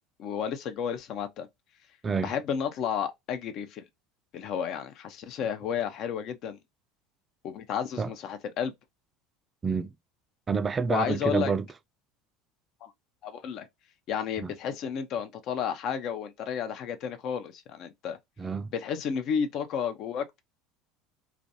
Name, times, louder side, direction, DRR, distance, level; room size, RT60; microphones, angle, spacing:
voice 1, 0.2-1.5 2.2-3.8 4.3-6.6 7.4-8.7 10.9-11.5 12.8-12.9 13.2-13.7 14.1-18.2 18.7-20.4, left 7 dB, 50° left, 0.4 m, -32 dB
voice 2, 2.0-2.3 8.0-8.1 9.6-9.9 10.5-11.7 14.4-14.5 18.4-18.7, right 5 dB, 25° right, 0.3 m, -28 dB
2.3 x 2.2 x 2.7 m
figure-of-eight pair, 70°, 0 cm